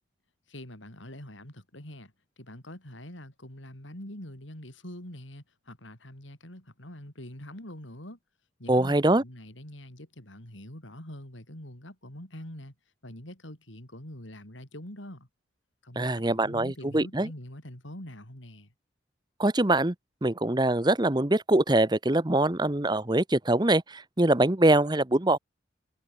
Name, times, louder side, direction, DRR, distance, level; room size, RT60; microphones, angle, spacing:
voice 1, 0.5-8.2 8.6-12.7 13.0-15.3 15.8-18.7, left 1 dB, 85° left, 5.9 m, -44 dB
voice 2, 8.7-9.2 16.0-17.3 19.4-19.9 20.2-25.4, right 1 dB, 20° right, 1.0 m, -23 dB
head